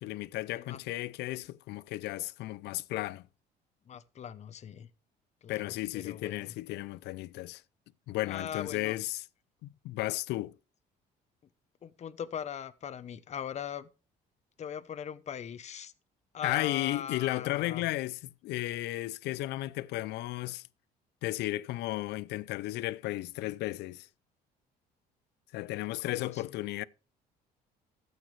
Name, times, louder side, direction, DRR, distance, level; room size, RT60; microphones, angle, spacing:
voice 1, 0.0-3.2 5.5-7.6 8.1-9.2 9.6-10.5 16.4-20.6 21.2-24.1 25.5-26.8, left 17 dB, 80° left, 0.5 m, -34 dB
voice 2, 3.9-4.9 5.4-6.5 8.3-9.0 11.8-13.9 14.6-15.9 16.3-17.8 26.0-26.4, left 8 dB, 40° left, 0.8 m, -40 dB
13.0 x 8.2 x 3.2 m
cardioid pair, 110°, 17 cm